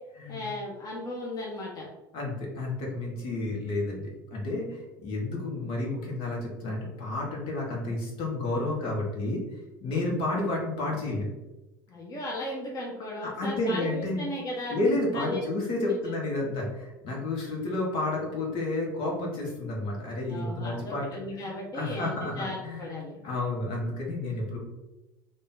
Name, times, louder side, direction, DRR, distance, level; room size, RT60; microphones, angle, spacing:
voice 1, 0.3-1.9 11.9-14.8 15.1-15.4 15.7-16.0 16.4-16.7 20.3-23.2, left 1 dB, 35° left, -3 dB, 1.2 m, -36 dB
voice 2, 2.1-9.4 9.8-11.3 13.2-14.2 14.7-22.9 23.2-24.6, left 2 dB, 60° left, -1 dB, 1.4 m, -31 dB
3.7 x 2.6 x 3.9 m, 1.0 s
hypercardioid pair, 75°, 10 cm